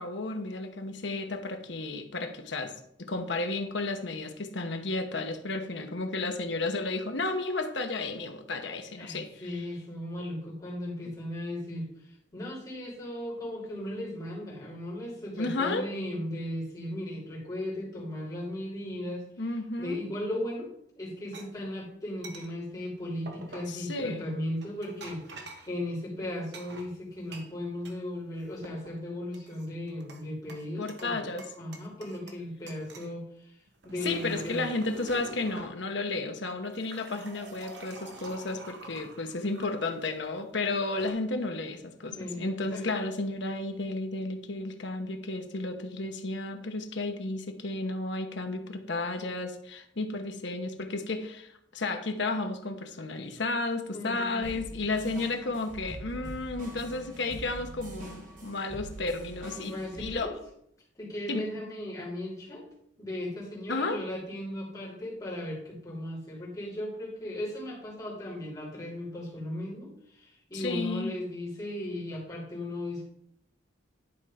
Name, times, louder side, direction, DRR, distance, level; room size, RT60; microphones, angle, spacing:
voice 1, 0.0-2.7 3.0-9.5 15.4-15.9 19.4-20.0 23.7-24.3 30.8-31.5 34.0-60.3 61.3-61.4 63.7-64.0 70.5-71.1, left 2 dB, 65° left, 6 dB, 1.0 m, -33 dB
voice 2, 9.0-19.3 19.8-20.7 21.0-31.2 31.6-33.6 33.8-34.7 42.2-42.8 53.9-54.6 59.5-60.3 61.0-62.6 63.0-73.0, left 1 dB, 20° left, -6 dB, 3.3 m, -36 dB
sound 1, 21.3-21.5 22.2-22.5 23.3-23.8 24.6-25.7 26.5-28.0 28.3-28.9 29.3-30.2 30.5-31.1 31.4-32.4 32.7-33.1 33.7-35.7 36.5-40.0 40.7-41.1, right 2 dB, 60° right, 1.2 m, -46 dB
sound 2, 54.4-60.1, right 1 dB, 40° right, 2.2 m, -44 dB
11.0 x 4.4 x 5.0 m, 0.72 s
head